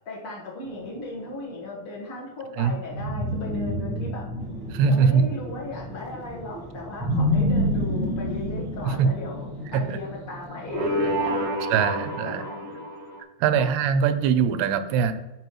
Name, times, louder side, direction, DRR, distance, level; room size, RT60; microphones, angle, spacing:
voice 1, 0.0-4.3 4.8-11.5 12.2-12.9 13.5-13.8, left 2 dB, 75° left, -5 dB, 1.2 m, -37 dB
sound 1, 0.7-1.6 2.9-5.5 7.0-10.1 10.7-13.2, equal, 65° right, 1.3 m, -28 dB
sound 2, 4.4-11.3, equal, 10° left, 0.9 m, -41 dB
voice 2, 4.7-5.2 9.0-9.1 9.7-10.0 11.7-12.4 13.4-15.1, right 6 dB, 85° right, 11 dB, 2.6 m, -22 dB
13.0 x 5.4 x 3.1 m, 1.1 s
omnidirectional pair, 4.7 m